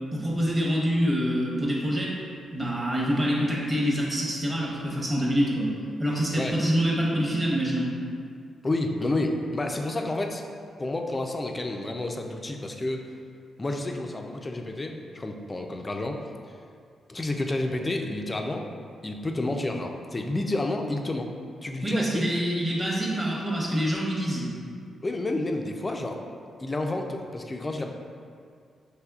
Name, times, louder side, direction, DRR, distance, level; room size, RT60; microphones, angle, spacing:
voice 1, 0.0-2.1 2.5-5.7 6.0-7.9 21.8-24.5, equal, 20° right, -5 dB, 0.9 m, -26 dB
voice 2, 8.6-10.4 10.8-13.0 13.6-16.2 17.1-18.7 19.0-21.3 21.6-22.4 25.0-26.2 26.6-27.9, left 2 dB, 20° left, 3 dB, 0.3 m, -30 dB
5.8 x 3.3 x 2.3 m, 2.2 s
cardioid pair, 130°, 0 cm